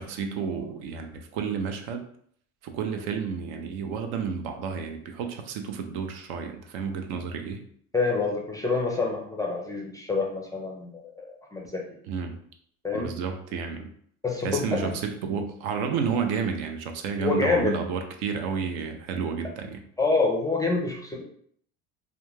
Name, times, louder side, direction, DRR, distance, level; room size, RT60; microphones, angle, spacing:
voice 1, 0.0-2.1 2.6-7.6 12.1-12.4 12.9-13.9 14.4-19.8, right 6 dB, 75° right, 5 dB, 0.6 m, -31 dB
voice 2, 7.9-11.8 12.8-13.1 14.2-14.9 17.2-17.8 20.0-21.2, left 3 dB, 10° left, 0 dB, 0.4 m, -27 dB
2.3 x 2.3 x 3.1 m, 0.63 s
supercardioid pair, 95°, 39 cm